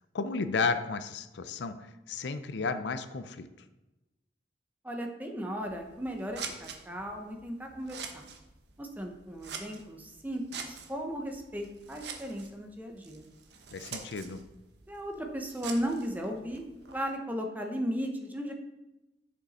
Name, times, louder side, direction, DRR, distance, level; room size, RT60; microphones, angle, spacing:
voice 1, 0.1-3.5 13.7-14.4, left 4 dB, 75° left, 10 dB, 0.5 m, -33 dB
voice 2, 4.8-8.2 8.8-13.3 14.9-18.5, equal, 10° right, 3 dB, 0.8 m, -36 dB
Scissors, 5.6-17.0, right 6 dB, 70° right, 1.0 m, -46 dB
8.0 x 6.6 x 4.2 m, 1.0 s
head